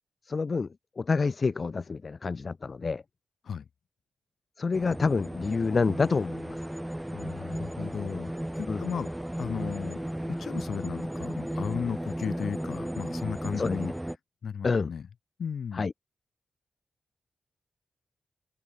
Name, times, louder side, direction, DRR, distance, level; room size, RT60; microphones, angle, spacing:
voice 1, 0.3-3.0 4.6-6.6 8.7-8.8 13.6-13.8 14.6-14.9 15.7-15.9, left 4 dB, 35° left, 1.5 m, -28 dB
sound 1, 4.7-14.2, right 1 dB, 5° right, 4.8 m, -35 dB
voice 2, 7.1-9.1 9.4-13.9 14.4-15.1 15.4-15.9, left 7 dB, 65° left, 7.5 m, -35 dB
wide cardioid pair, 160°, 0 cm